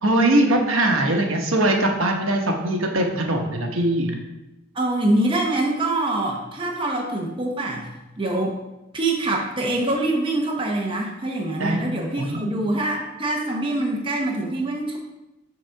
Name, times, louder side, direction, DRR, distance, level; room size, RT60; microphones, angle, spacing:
voice 1, 0.0-4.1 11.6-11.8 12.2-12.4, right 1 dB, 70° right, 2 dB, 1.1 m, -21 dB
voice 2, 4.7-8.6 8.9-15.0, right 2 dB, 25° right, 0 dB, 0.8 m, -24 dB
5.9 x 4.1 x 5.7 m, 0.97 s
head